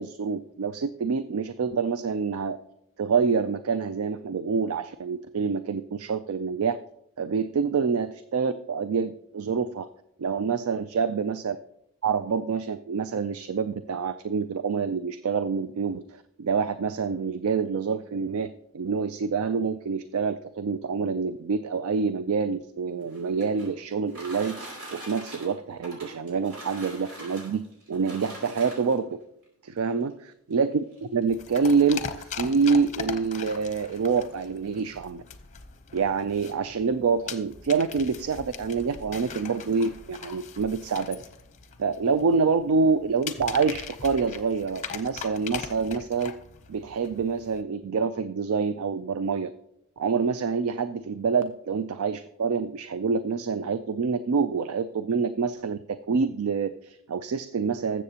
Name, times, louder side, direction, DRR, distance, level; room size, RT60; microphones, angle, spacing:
voice 1, 0.0-2.6 3.0-6.8 7.2-9.9 10.2-11.6 12.0-24.6 24.9-29.2 29.6-30.1 30.5-35.2 35.9-41.2 41.8-46.3 46.7-49.5 50.0-58.0, right 5 dB, 70° right, 12 dB, 0.4 m, -27 dB
sound 1, 22.9-29.1 30.0-30.1 30.5-30.6 30.9-31.3, right 1 dB, 85° right, 4.5 m, -43 dB
sound 2, 31.3-47.6, left 6 dB, 35° left, 0.7 m, -40 dB
20.0 x 7.5 x 2.9 m, 0.78 s
head